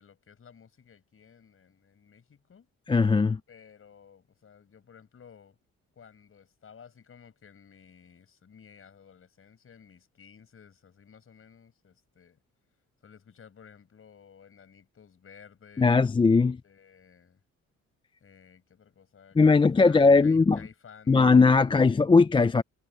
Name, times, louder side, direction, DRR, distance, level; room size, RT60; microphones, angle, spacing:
voice 1, 0.0-2.7 3.5-5.6 6.0-12.4 13.0-16.3 16.6-17.4 18.2-21.8, left 7 dB, 45° left, 6.1 m, -54 dB
voice 2, 2.9-3.4 15.8-16.6 19.4-20.6 21.1-22.6, left 4 dB, 15° left, 0.5 m, -19 dB
cardioid pair, 90°, 30 cm